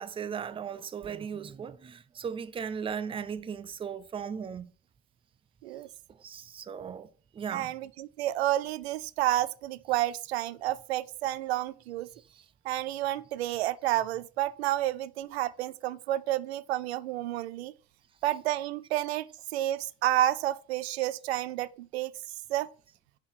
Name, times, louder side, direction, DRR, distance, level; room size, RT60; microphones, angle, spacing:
voice 1, 0.0-4.7 6.1-7.1 7.3-7.7, right 7 dB, 15° right, 0.5 m, -37 dB
voice 2, 7.5-12.1 12.6-17.7 18.2-22.1 22.5-22.7, right 14 dB, 85° right, 0.5 m, -30 dB
6.3 x 3.9 x 6.3 m
hypercardioid pair, 90°, 31 cm